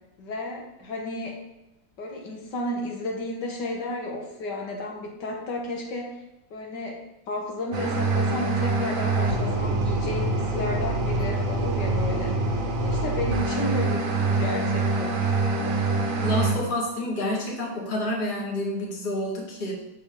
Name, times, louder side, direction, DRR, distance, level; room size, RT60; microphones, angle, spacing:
voice 1, 0.2-1.4 2.0-6.2 6.5-7.0 7.3-12.4 12.8-15.2, left 1 dB, 80° left, 0 dB, 1.9 m, -32 dB
sound 1, 7.7-16.5, right 3 dB, 50° right, 1.4 m, -25 dB
voice 2, 16.2-19.7, left 1 dB, 30° left, -1 dB, 1.6 m, -28 dB
6.7 x 5.9 x 5.2 m, 0.91 s
omnidirectional pair, 1.9 m